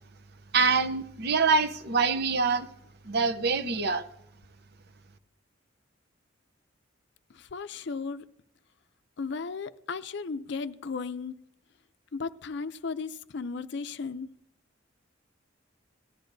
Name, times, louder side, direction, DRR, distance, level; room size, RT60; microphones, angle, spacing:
voice 1, 0.5-2.7 3.0-4.1, right 4 dB, 55° right, 0.7 m, -25 dB
voice 2, 7.3-8.2 9.2-11.3 12.1-14.3, left 4 dB, 60° left, 0.5 m, -35 dB
18.0 x 12.0 x 2.6 m
head